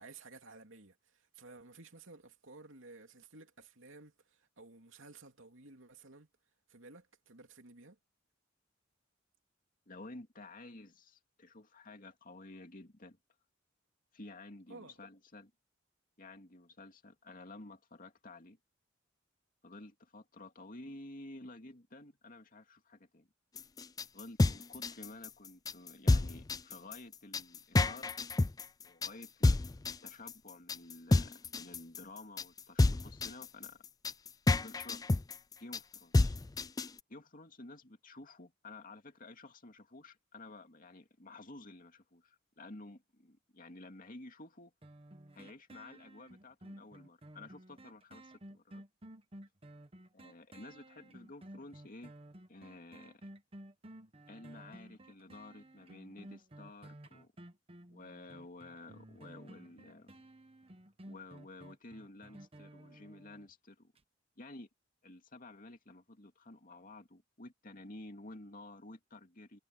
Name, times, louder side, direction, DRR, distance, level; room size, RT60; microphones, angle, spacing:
voice 1, 0.0-6.3 6.7-8.0 14.7-15.0, right 3 dB, 80° right, 2.8 m, -54 dB
voice 2, 9.9-13.2 14.1-15.5 16.2-18.6 19.6-23.3 24.1-28.2 28.8-33.8 34.6-35.1 35.6-36.3 37.1-44.7 45.3-48.8 50.1-52.1 52.5-53.2 54.3-57.3 57.9-60.2 61.1-63.9 64.4-64.7 65.0-69.6, left 2 dB, 45° left, 2.4 m, -52 dB
sound 1, 23.6-37.0, left 2 dB, 20° left, 0.4 m, -30 dB
sound 2, 44.8-63.5 64.0-64.1, right 1 dB, 30° right, 1.3 m, -54 dB
head